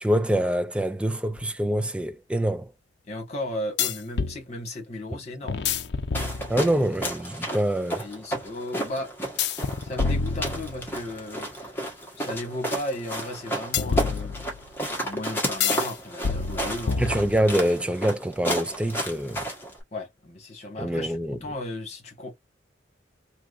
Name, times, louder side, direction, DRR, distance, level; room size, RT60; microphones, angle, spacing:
voice 1, 0.0-2.7 5.1-5.2 6.5-8.1 17.0-19.5 20.8-21.4, equal, 5° right, 0.3 m, -25 dB
sound 1, 1.4-1.5 3.8-4.4 5.5-6.8 9.4-11.1 13.7-14.7 15.6-15.9 16.2-17.6, left 5 dB, 65° left, 0.5 m, -28 dB
voice 2, 3.1-5.6 8.0-9.1 9.8-11.7 12.1-14.4 14.9-17.0 19.9-21.1 21.4-22.3, left 1 dB, 35° left, 1.5 m, -35 dB
sound 2, 6.1-19.8, right 1 dB, 10° left, 1.3 m, -32 dB
3.5 x 2.9 x 2.5 m
head